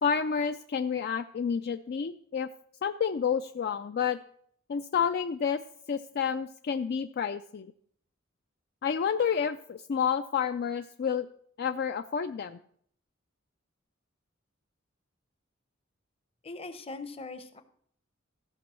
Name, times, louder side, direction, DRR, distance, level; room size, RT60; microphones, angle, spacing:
voice 1, 0.0-2.5 2.8-4.2 4.7-5.6 5.9-7.7 8.8-11.3 11.6-12.6, left 7 dB, 55° left, 9 dB, 0.4 m, -29 dB
voice 2, 16.4-17.6, left 3 dB, 30° left, 10 dB, 0.8 m, -41 dB
14.5 x 5.2 x 6.2 m, 0.64 s
head